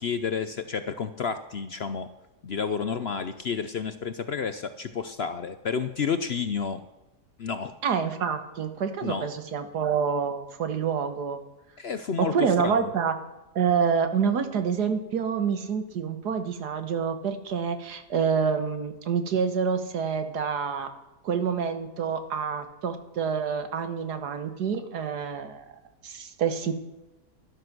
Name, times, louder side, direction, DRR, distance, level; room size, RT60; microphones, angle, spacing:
voice 1, 0.0-2.1 2.4-6.8 7.4-7.7 9.0-9.3 11.8-12.9, left 6 dB, 55° left, 10 dB, 0.7 m, -30 dB
voice 2, 7.8-11.4 12.2-13.1 13.6-20.9 21.2-25.7 26.0-26.8, right 6 dB, 80° right, 9 dB, 1.9 m, -27 dB
13.0 x 12.0 x 6.1 m, 1.0 s
omnidirectional pair, 1.7 m